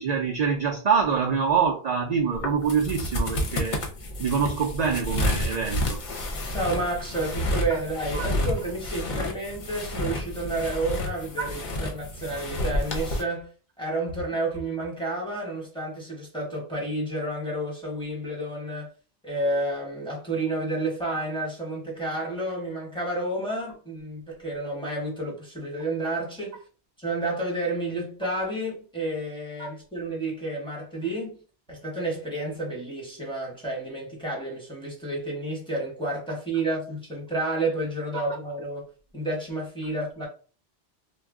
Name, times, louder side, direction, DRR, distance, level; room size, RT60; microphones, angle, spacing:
voice 1, 0.0-3.8 4.2-6.0 8.1-8.3 11.4-11.5 29.6-29.7, right 6 dB, 55° right, 0.4 m, -25 dB
sound 1, 2.3-13.2, left 1 dB, 50° left, 0.7 m, -30 dB
voice 2, 6.5-13.5 13.8-18.9 19.2-26.6 27.0-31.4 31.7-38.9 39.1-40.3, right 2 dB, 5° left, 0.9 m, -30 dB
2.3 x 2.1 x 3.5 m
omnidirectional pair, 1.1 m